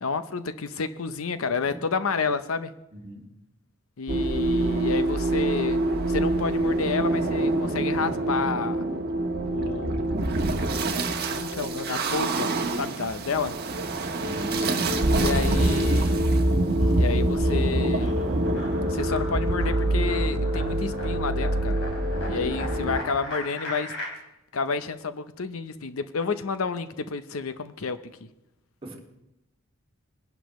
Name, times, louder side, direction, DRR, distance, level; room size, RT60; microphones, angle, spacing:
voice 1, 0.0-2.7 4.0-8.8 9.4-10.1 11.3-13.6 15.1-16.2 17.0-18.1 18.9-21.8 22.3-23.9 24.5-28.0, left 4 dB, 80° left, 11 dB, 0.7 m, -30 dB
voice 2, 2.9-3.2 14.2-14.7 22.6-22.7 28.8-29.0, right 1 dB, 25° right, -1 dB, 2.4 m, -40 dB
sound 1, 4.1-23.0, right 1 dB, 50° right, 1.2 m, -25 dB
sound 2, 14.3-15.0 15.3-24.1, left 2 dB, 60° left, 3.2 m, -39 dB
21.0 x 11.5 x 3.1 m, 0.91 s
head